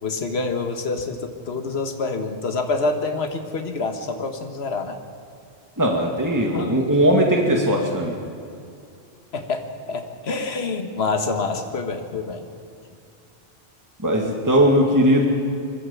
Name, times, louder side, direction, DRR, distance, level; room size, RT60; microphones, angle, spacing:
voice 1, 0.0-5.0 6.5-6.8 9.3-12.4, left 3 dB, 75° left, 5 dB, 1.7 m, -27 dB
voice 2, 5.8-8.1 14.0-15.2, equal, 15° right, 0 dB, 2.1 m, -19 dB
23.5 x 15.5 x 7.2 m, 2.5 s
omnidirectional pair, 1.1 m